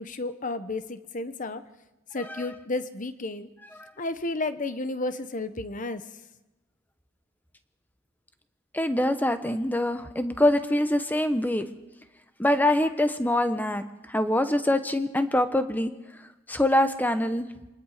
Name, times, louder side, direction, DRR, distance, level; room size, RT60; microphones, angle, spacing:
voice 1, 0.0-1.6 2.1-3.5 4.0-6.0, left 2 dB, 40° left, 11 dB, 1.0 m, -32 dB
voice 2, 8.7-11.7 12.4-15.9 16.5-17.5, left 1 dB, 10° left, 9 dB, 1.0 m, -24 dB
26.0 x 20.0 x 5.0 m, 1.0 s
head